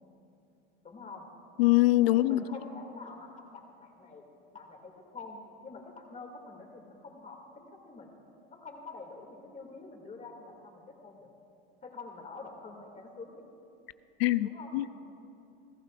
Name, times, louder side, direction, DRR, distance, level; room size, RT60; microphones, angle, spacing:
voice 1, 0.8-1.3 2.0-4.3 4.5-8.2 8.5-11.3 11.8-13.4 14.4-14.7, left 3 dB, 25° left, 2 dB, 2.4 m, -47 dB
voice 2, 1.6-2.4 14.2-15.0, left 17 dB, 85° left, 16 dB, 0.5 m, -24 dB
27.5 x 14.5 x 2.5 m, 2.7 s
supercardioid pair, 110°, 29 cm